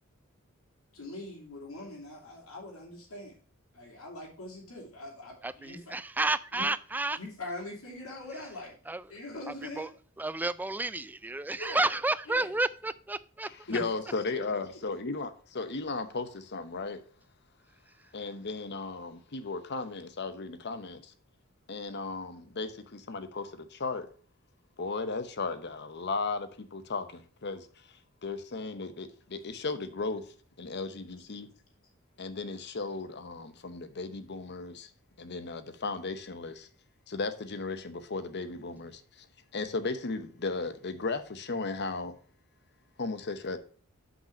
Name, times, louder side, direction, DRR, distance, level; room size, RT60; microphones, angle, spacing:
voice 1, 0.9-3.4 3.7-5.8 6.5-6.7 7.1-8.8 9.1-9.9 11.6-12.0 12.3-12.6 13.7-13.8 14.3-14.4, left 2 dB, 90° left, 3.0 m, -42 dB
voice 2, 5.4-7.2 8.9-9.0 9.8-9.9 10.2-13.5, right 2 dB, 10° right, 0.3 m, -31 dB
voice 3, 13.7-17.0 18.1-21.1 21.7-24.1 24.8-27.7 28.2-30.2 30.6-31.5 32.2-34.9 35.2-36.7 37.1-39.3 39.5-42.2 43.0-43.6, left 3 dB, 55° left, 0.9 m, -35 dB
5.9 x 5.4 x 6.2 m
head